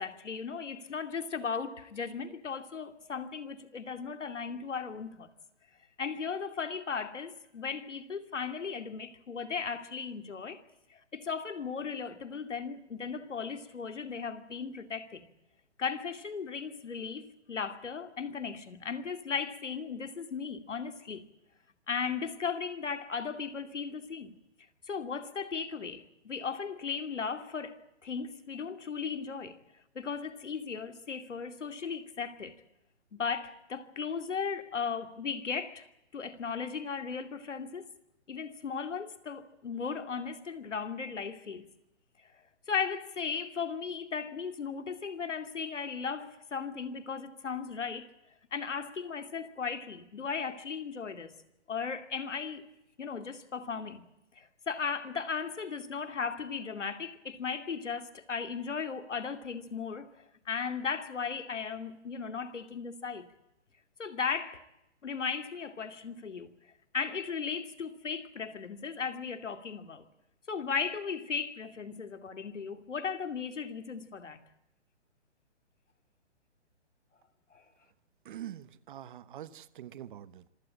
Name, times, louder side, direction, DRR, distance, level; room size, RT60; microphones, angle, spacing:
voice 1, 0.0-5.3 6.0-10.6 10.9-15.3 15.8-21.3 21.9-24.4 24.9-29.6 29.9-32.6 33.1-35.9 36.1-37.9 38.3-41.7 42.7-48.1 48.5-51.3 51.7-52.7 53.0-54.1 54.3-63.3 64.0-64.6 65.0-66.5 66.9-70.0 70.5-74.4 77.5-77.6, left 6 dB, 85° left, 2.6 m, -36 dB
voice 2, 78.2-80.5, right 11 dB, 45° right, 1.2 m, -45 dB
26.0 x 16.5 x 8.9 m
hypercardioid pair, 145°, 35 cm